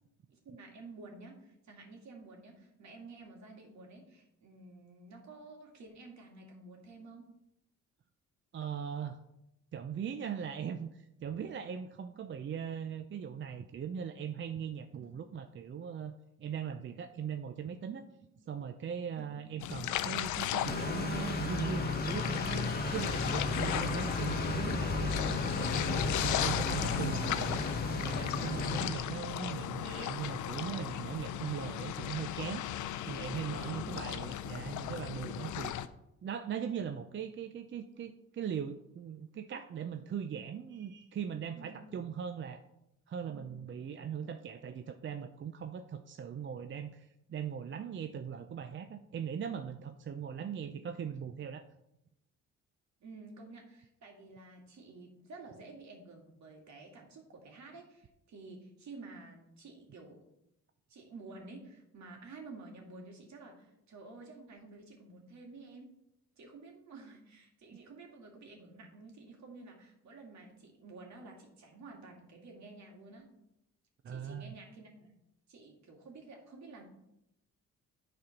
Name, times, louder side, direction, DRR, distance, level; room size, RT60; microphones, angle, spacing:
voice 1, 0.3-7.3 14.9-15.1 18.2-18.4 19.1-19.3 26.8-27.0 31.3-31.4 33.6-33.9 41.5-41.9 43.3-43.5 53.0-60.2 60.9-65.9 66.4-73.3 74.1-75.1 75.5-76.8, right 3 dB, 65° right, 1 dB, 2.4 m, -51 dB
voice 2, 8.5-9.2 9.7-18.0 18.5-27.6 27.9-32.6 33.1-35.7 36.2-42.6 43.1-51.7 74.0-74.5, right 8 dB, 40° right, 8 dB, 0.5 m, -40 dB
sound 1, 19.6-35.9, left 11 dB, 75° left, 0.6 m, -37 dB
sound 2, 20.6-28.9, left 3 dB, 30° left, 1.3 m, -34 dB
9.6 x 4.3 x 5.8 m, 0.85 s
cardioid pair, 90°, 30 cm